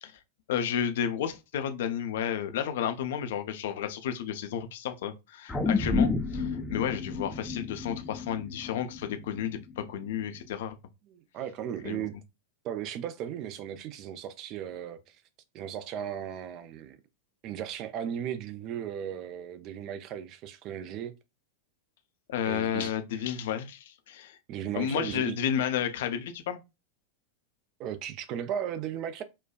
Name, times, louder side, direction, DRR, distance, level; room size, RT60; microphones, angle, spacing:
voice 1, 0.5-10.8 11.8-12.1 22.3-24.4 24.7-26.6, left 9 dB, 55° left, 0.5 m, -32 dB
sound 1, 5.5-10.0 10.4-10.5, left 4 dB, 10° left, 0.5 m, -30 dB
voice 2, 11.1-12.2 12.6-15.2 15.5-17.0 17.4-21.1 22.5-23.2 24.5-25.4 27.8-29.2, right 9 dB, 40° right, 0.5 m, -36 dB
4.3 x 2.3 x 2.3 m
figure-of-eight pair, 90°, 0 cm